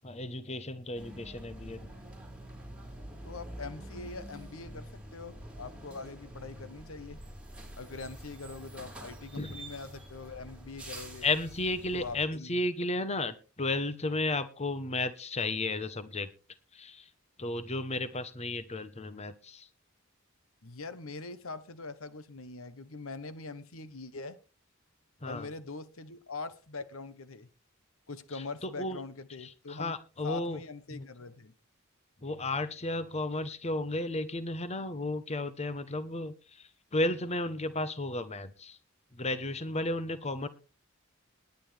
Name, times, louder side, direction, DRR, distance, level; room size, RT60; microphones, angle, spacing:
voice 1, 0.0-1.8 9.4-9.6 11.2-16.3 16.7-17.1 17.4-19.7 25.2-25.5 28.3-29.0 29.4-30.6 30.9-31.1 32.2-38.8 39.1-40.5, left 2 dB, 30° left, 12 dB, 1.1 m, -33 dB
sound 1, 1.0-12.3, right 1 dB, 5° right, 4.4 m, -46 dB
voice 2, 3.2-7.2 7.7-11.3 11.9-12.5 20.6-24.4 25.3-27.5 28.1-29.9 30.2-31.5, left 3 dB, 70° left, 13 dB, 1.0 m, -43 dB
20.0 x 9.4 x 3.4 m, 0.34 s
head